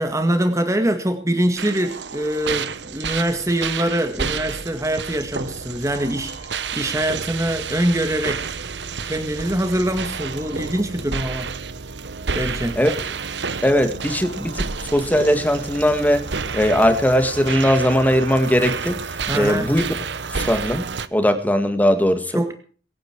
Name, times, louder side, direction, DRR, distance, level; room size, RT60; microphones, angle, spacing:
voice 1, 0.0-8.6 9.0-11.5 12.3-12.8 19.3-19.7 22.3-22.5, right 1 dB, 20° right, 1.9 m, -23 dB
sound 1, 1.6-21.1, right 5 dB, 80° right, 0.9 m, -30 dB
voice 2, 13.6-16.3 16.5-19.0 19.3-19.9 20.3-20.9 21.1-22.4, equal, 10° left, 1.8 m, -19 dB
23.5 x 9.6 x 4.6 m
head